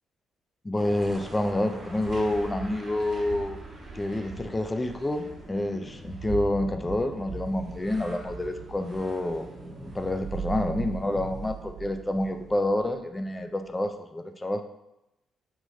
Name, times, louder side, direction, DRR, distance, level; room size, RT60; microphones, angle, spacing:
voice 1, 0.6-3.6 3.9-9.5 9.9-14.6, left 1 dB, 20° left, 7 dB, 0.3 m, -28 dB
sound 1, 0.7-13.2, right 4 dB, 35° right, 1.2 m, -40 dB
4.7 x 2.2 x 3.1 m, 0.89 s
cardioid pair, 90°, 0 cm